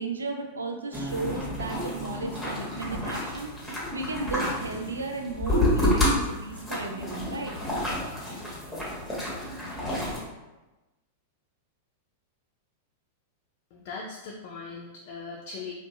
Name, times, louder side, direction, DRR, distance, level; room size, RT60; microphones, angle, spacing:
voice 1, 0.0-3.5 3.9-7.5, right 3 dB, 80° right, 4 dB, 0.3 m, -34 dB
sound 1, 0.9-10.2, left 1 dB, 5° left, 0.9 m, -29 dB
Acoustic guitar, 0.9-4.1, right 2 dB, 50° right, 1.5 m, -42 dB
voice 2, 13.7-15.7, left 4 dB, 50° left, -2 dB, 0.4 m, -39 dB
2.6 x 2.3 x 2.4 m, 1.1 s
figure-of-eight pair, 95°, 0 cm